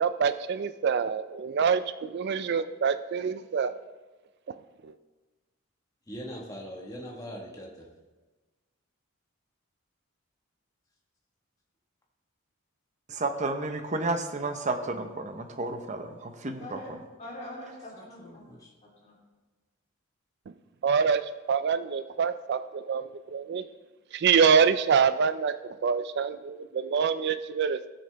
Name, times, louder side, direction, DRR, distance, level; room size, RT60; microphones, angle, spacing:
voice 1, 0.0-3.8 4.8-4.9 20.8-23.6 24.1-27.9, right 6 dB, 50° right, 11 dB, 0.4 m, -26 dB
voice 2, 6.1-7.9 18.2-18.7, equal, 15° left, -1 dB, 1.4 m, -41 dB
voice 3, 13.1-16.8, right 2 dB, 35° right, 6 dB, 0.8 m, -31 dB
voice 4, 16.6-18.4 18.8-19.1, left 1 dB, 30° left, -3 dB, 3.0 m, -43 dB
17.5 x 6.6 x 3.4 m, 1.2 s
head